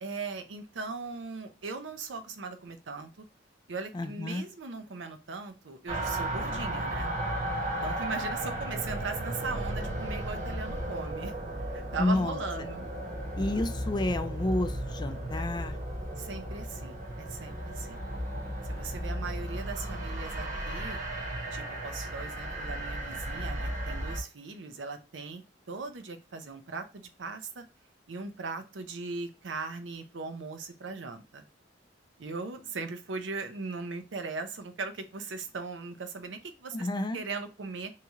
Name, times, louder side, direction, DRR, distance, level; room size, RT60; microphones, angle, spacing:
voice 1, 0.0-3.2 3.7-7.1 7.8-11.3 11.7-12.9 16.2-18.0 18.7-21.0 21.5-25.4 25.7-27.6 28.1-31.5 32.2-36.9 37.1-37.9, right 4 dB, 85° right, 8 dB, 0.6 m, -39 dB
voice 2, 3.9-4.4 12.0-12.4 13.4-15.8 18.4-18.6 36.7-37.2, left 1 dB, 25° left, 8 dB, 0.4 m, -30 dB
sound 1, 5.9-24.2, right 1 dB, 45° right, 0.9 m, -35 dB
2.9 x 2.9 x 3.5 m, 0.29 s
head